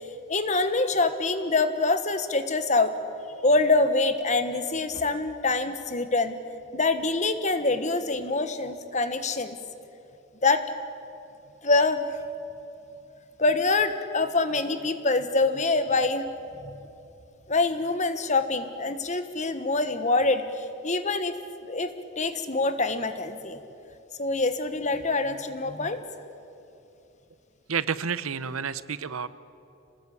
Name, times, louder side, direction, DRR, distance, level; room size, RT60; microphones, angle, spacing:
voice 1, 0.3-2.9 3.4-6.4 6.7-9.6 10.4-10.6 11.6-12.1 13.4-16.2 16.6-16.9 17.5-21.4 21.7-23.6 24.2-26.0, left 3 dB, 35° left, 9 dB, 1.4 m, -25 dB
voice 2, 27.7-29.3, right 6 dB, 80° right, 15 dB, 0.8 m, -30 dB
28.5 x 19.5 x 8.6 m, 2.9 s
head